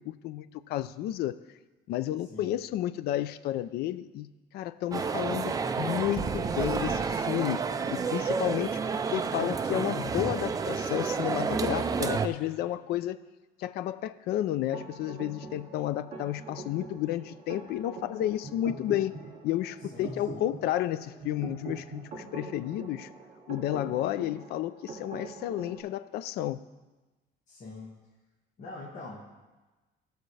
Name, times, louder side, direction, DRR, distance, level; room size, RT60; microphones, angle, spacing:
voice 1, 0.0-1.3 1.9-4.3 4.5-7.6 8.1-13.2 13.6-19.2 19.4-23.1 23.5-26.6, left 13 dB, 65° left, 14 dB, 0.4 m, -31 dB
sound 1, 4.9-12.3, right 5 dB, 20° right, 0.4 m, -30 dB
sound 2, 14.7-25.8, right 3 dB, 45° right, 2.3 m, -43 dB
voice 2, 19.9-20.4 27.5-27.9 28.6-29.2, left 2 dB, 45° left, -6 dB, 1.7 m, -43 dB
17.5 x 6.5 x 3.3 m, 1.2 s
cardioid pair, 150°, 18 cm